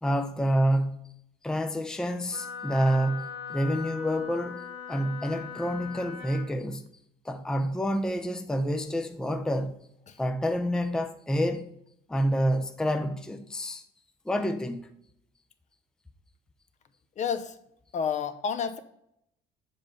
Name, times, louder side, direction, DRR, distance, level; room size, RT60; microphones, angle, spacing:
voice 1, 0.0-1.1 1.4-6.8 7.3-9.8 10.2-11.7 12.1-13.8 14.3-14.8, equal, 5° left, 0.5 m, -28 dB
Wind instrument woodwind instrument, 2.3-6.5, left 6 dB, 80° left, 1.5 m, -40 dB
voice 2, 17.2-17.6 17.9-18.8, left 7 dB, 45° left, 0.6 m, -30 dB
7.2 x 3.8 x 5.3 m
cardioid pair, 110°, 17 cm